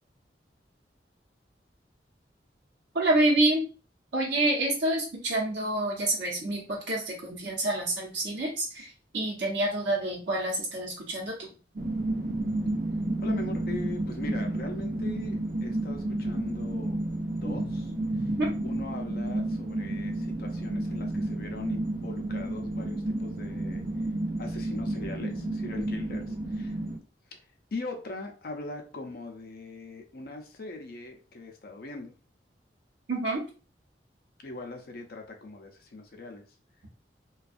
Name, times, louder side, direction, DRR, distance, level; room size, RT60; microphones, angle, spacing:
voice 1, 2.9-3.6 4.1-11.5 17.4-17.6 18.1-18.5 33.1-33.4, right 2 dB, 90° right, -3 dB, 0.8 m, -28 dB
sound 1, 11.8-27.0, right 1 dB, 50° right, 0.5 m, -31 dB
voice 2, 13.2-17.0 17.3-17.9 18.2-18.3 18.6-23.8 24.4-26.8 27.3-27.4 27.7-32.1 34.4-36.4, left 2 dB, 55° left, 3 dB, 0.5 m, -41 dB
2.4 x 2.2 x 2.5 m, 0.36 s
head